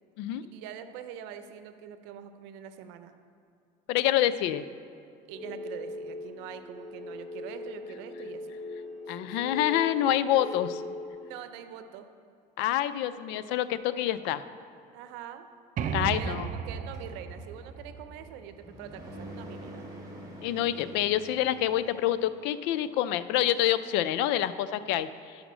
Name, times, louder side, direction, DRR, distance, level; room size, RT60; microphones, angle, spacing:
voice 1, 0.5-3.1 5.3-8.5 9.1-9.4 10.4-10.6 11.2-12.1 14.9-15.5 15.8-19.8, right 9 dB, 85° right, 9 dB, 0.7 m, -44 dB
voice 2, 3.9-4.6 9.1-10.8 12.6-14.4 15.9-16.5 20.4-25.1, left 12 dB, 80° left, 14 dB, 0.4 m, -27 dB
sound 1, 5.3-11.1, left 2 dB, ahead, 2.1 m, -40 dB
sound 2, 15.8-19.4, right 7 dB, 50° right, 0.5 m, -35 dB
sound 3, 16.9-22.5, right 1 dB, 20° right, 2.4 m, -46 dB
11.0 x 5.0 x 6.1 m, 2.4 s
cardioid pair, 105°, 18 cm